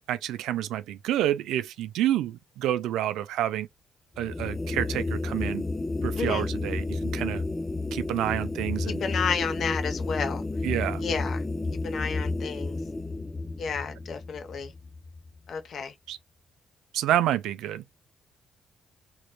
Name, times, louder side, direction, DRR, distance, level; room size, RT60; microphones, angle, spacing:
voice 1, 0.1-3.7 4.2-5.6 6.0-7.4 7.9-9.0 10.6-11.0 16.1-16.2 16.9-17.8, right 12 dB, 90° right, 0.4 m, -28 dB
sound 1, 4.2-15.5, left 2 dB, 15° left, 0.3 m, -31 dB
voice 2, 6.2-6.5 8.8-10.4 11.0-11.4 11.8-12.8 13.6-14.7 15.5-15.9, left 6 dB, 60° left, 0.8 m, -31 dB
3.1 x 3.0 x 2.2 m
cardioid pair, 90°, 0 cm